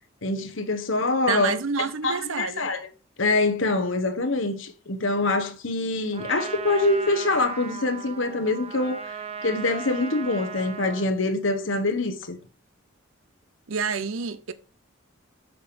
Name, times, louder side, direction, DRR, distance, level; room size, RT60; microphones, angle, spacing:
voice 1, 0.2-1.6 2.0-2.9 3.2-9.0 9.4-12.4, left 2 dB, 75° left, 1.3 m, -25 dB
voice 2, 1.3-2.7 13.7-14.5, right 5 dB, 90° right, 0.6 m, -28 dB
Trumpet, 6.1-11.1, right 5 dB, 30° right, 0.9 m, -37 dB
7.7 x 4.9 x 5.2 m
head